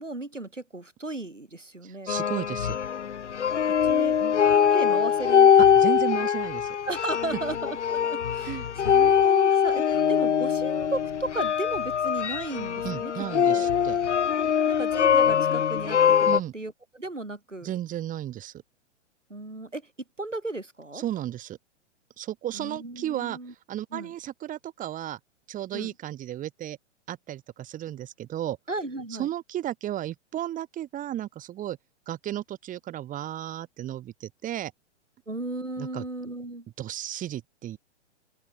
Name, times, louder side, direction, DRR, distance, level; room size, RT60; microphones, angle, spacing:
voice 1, 0.0-2.1 3.8-5.5 6.2-6.3 6.9-13.7 14.6-17.7 19.3-19.8 20.2-21.0 22.5-23.5 23.9-24.1 25.7-25.9 28.7-29.3 35.3-36.7, right 2 dB, 90° right, 6.6 m, -35 dB
voice 2, 1.8-2.8 5.8-6.8 8.4-8.7 12.8-14.0 16.2-16.5 17.6-18.5 20.9-21.6 22.2-23.4 23.7-25.2 25.5-26.8 27.1-28.6 29.2-31.8 32.1-34.7 35.8-36.0 36.8-37.8, right 12 dB, 20° right, 5.3 m, -34 dB
sound 1, 2.1-16.4, left 8 dB, 70° left, 0.9 m, -22 dB
open air
figure-of-eight pair, 115°, 36 cm